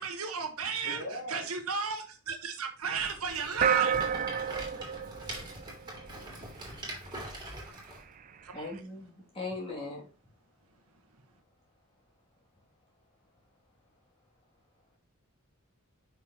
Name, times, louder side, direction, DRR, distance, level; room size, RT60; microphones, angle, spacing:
voice 1, 0.0-1.0 1.3-4.0 8.4-8.7, right 5 dB, 75° right, 5 dB, 1.4 m, -34 dB
voice 2, 0.8-1.5 4.0-7.0, equal, 55° left, -2 dB, 3.7 m, -46 dB
Rattle, 2.9-8.0, right 1 dB, 20° right, 3.1 m, -43 dB
sound 1, 3.6-6.2, right 7 dB, 35° right, 0.4 m, -29 dB
voice 3, 8.5-10.1, left 3 dB, 25° left, -3 dB, 2.8 m, -39 dB
7.5 x 5.9 x 3.0 m, 0.34 s
head